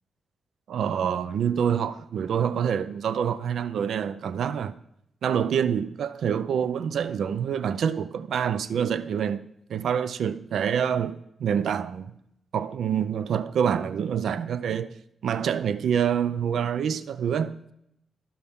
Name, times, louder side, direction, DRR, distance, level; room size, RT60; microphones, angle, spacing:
voice 1, 0.7-4.8 5.2-12.2 12.5-15.0 15.2-17.6, right 8 dB, 70° right, 0.5 m, -26 dB
16.5 x 5.8 x 3.6 m
wide cardioid pair, 165°, 0 cm